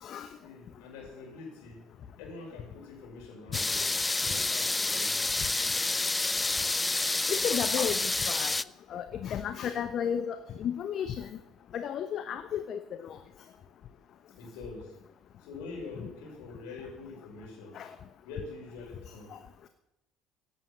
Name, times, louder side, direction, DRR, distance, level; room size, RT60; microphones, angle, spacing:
voice 1, 0.4-5.5 14.4-15.0 15.4-17.9 18.2-19.4, left 3 dB, 65° left, 0 dB, 6.1 m, -45 dB
sound 1, 3.5-8.6, left 2 dB, 15° left, 0.5 m, -29 dB
voice 2, 7.3-8.5 8.9-11.3 11.7-13.2 17.7-17.9 19.3-19.4, left 8 dB, 50° left, 10 dB, 1.0 m, -33 dB
16.0 x 8.9 x 8.8 m, 0.91 s
figure-of-eight pair, 55°, 0 cm